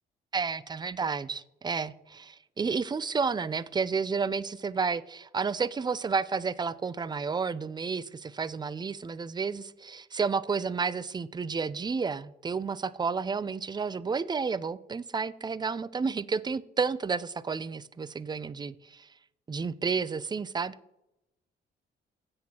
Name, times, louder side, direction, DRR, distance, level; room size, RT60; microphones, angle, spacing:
voice 1, 0.3-19.1 19.5-20.7, right 5 dB, 20° right, 18 dB, 0.4 m, -31 dB
16.0 x 7.7 x 2.9 m, 0.89 s
cardioid pair, 90°, 20 cm